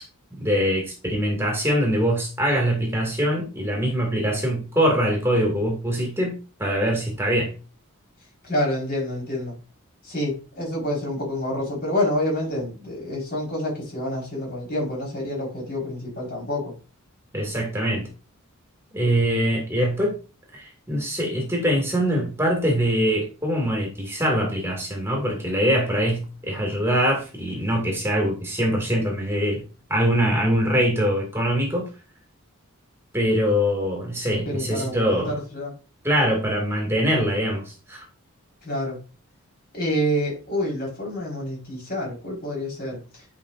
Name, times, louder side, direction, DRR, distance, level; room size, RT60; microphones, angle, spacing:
voice 1, 0.4-7.5 17.3-18.1 18.9-20.2 20.5-29.6 29.9-31.9 33.1-35.4 36.0-38.1, equal, 10° right, 2.0 m, -23 dB
voice 2, 8.4-9.5 10.0-16.7 34.4-35.7 38.6-39.0 39.7-43.3, left 1 dB, 40° left, 4.2 m, -28 dB
9.2 x 5.1 x 2.5 m
head